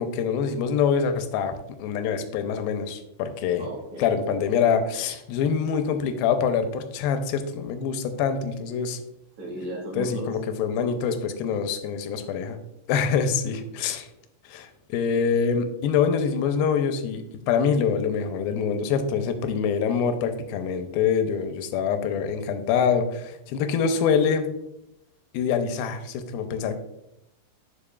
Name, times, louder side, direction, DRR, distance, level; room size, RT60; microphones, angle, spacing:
voice 1, 0.0-3.7 4.0-9.0 9.9-12.6 12.9-14.1 14.5-24.5 25.3-26.8, left 6 dB, 85° left, 8 dB, 2.4 m, -25 dB
voice 2, 3.6-4.1 9.4-10.3, right 1 dB, 50° right, -3 dB, 2.3 m, -35 dB
9.9 x 5.1 x 2.3 m, 0.84 s
omnidirectional pair, 4.2 m